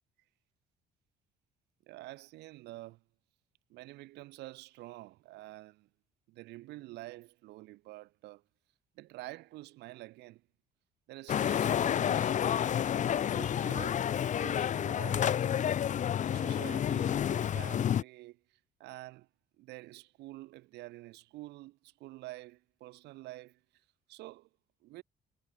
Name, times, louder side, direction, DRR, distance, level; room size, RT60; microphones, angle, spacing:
voice 1, 1.9-3.0 3.7-5.9 6.3-8.4 8.9-10.4 11.1-12.9 13.3-14.1 14.4-15.8 16.3-19.3 19.6-24.5 24.8-25.0, right 18 dB, 85° right, 4.7 m, -48 dB
sound 1, 11.3-18.0, left 9 dB, 45° left, 1.2 m, -30 dB
cardioid pair, 110°, 17 cm